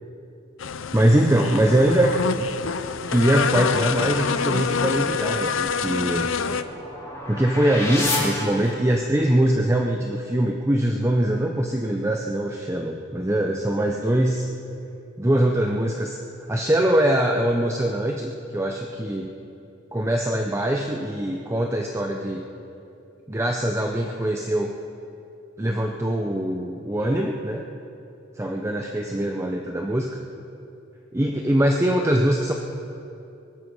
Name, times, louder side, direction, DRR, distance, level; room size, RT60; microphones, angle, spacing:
sound 1, 0.6-6.6, left 5 dB, 75° left, 0.6 m, -26 dB
voice 1, 0.9-2.4 3.1-6.3 7.3-14.5 15.2-16.2 16.5-19.3 19.9-22.4 23.3-24.7 25.6-27.6 28.4-30.1 31.1-32.5, right 1 dB, 15° right, 2 dB, 0.7 m, -22 dB
sound 2, 5.8-9.2, left 2 dB, 15° left, 3.3 m, -30 dB
23.0 x 13.0 x 4.7 m, 2.8 s
head